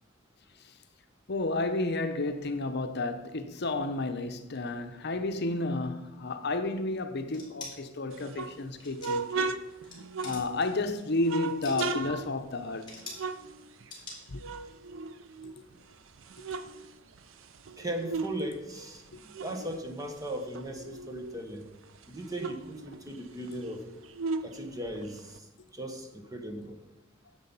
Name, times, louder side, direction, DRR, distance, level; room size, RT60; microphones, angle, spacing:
voice 1, 1.3-9.5 10.2-12.9 14.3-14.4, left 2 dB, 55° left, 0.8 m, -31 dB
sound 1, 7.3-7.7 8.8-9.3 9.7-10.0 10.2-10.7 11.4-12.0 12.9-13.3 13.9-14.2, left 3 dB, 25° left, 3.5 m, -43 dB
sound 2, 8.1-10.8 11.2-14.1 14.4-15.7 16.1-18.4 18.7-21.2 21.6-21.7 21.9-25.4, right 4 dB, 75° right, 0.6 m, -37 dB
voice 2, 17.8-19.0 19.4-21.6 22.1-23.9 24.4-25.5 25.7-26.8, right 1 dB, 20° right, 1.3 m, -37 dB
10.0 x 7.5 x 5.5 m
head